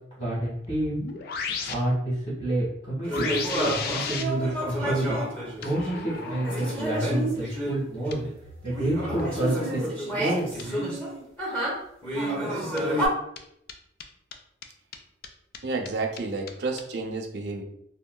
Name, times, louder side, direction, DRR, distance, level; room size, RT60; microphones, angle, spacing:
voice 1, 0.2-1.0 1.6-3.3 3.6-5.2 5.6-8.2 8.6-9.8 10.1-10.5, right 1 dB, 30° left, -9 dB, 1.2 m, -28 dB
sound 1, 0.6-1.7 3.1-4.2 5.6-6.7 8.1-9.2 10.6-10.7 12.8-12.9 13.4-13.5 13.7-13.8 14.0-14.1 14.3-14.4 14.6-14.7 14.9-15.0 15.2-15.3 15.5-15.6 15.9-16.0 16.2-16.3 16.5-16.6 16.8-16.9, left 5 dB, 55° left, 0.3 m, -34 dB
sound 2, 3.0-8.3 8.7-13.1, right 1 dB, 10° left, 0.8 m, -30 dB
voice 2, 15.6-17.6, right 3 dB, 60° right, 3 dB, 0.5 m, -30 dB
3.6 x 2.2 x 2.2 m, 0.76 s
head